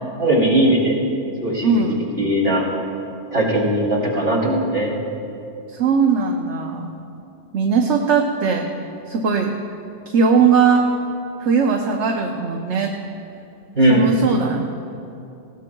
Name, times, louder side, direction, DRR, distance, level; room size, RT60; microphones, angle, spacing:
voice 1, 0.2-1.0 1.4-1.9 2.2-2.7 3.3-4.9 13.8-14.1, right 1 dB, 50° right, -5 dB, 3.4 m, -18 dB
voice 2, 1.6-2.0 5.7-6.9 7.5-8.7 9.1-9.5 10.1-10.9 11.4-13.0 13.9-14.6, right 5 dB, 70° right, 2 dB, 1.1 m, -19 dB
20.0 x 17.5 x 2.3 m, 2.7 s
omnidirectional pair, 1.3 m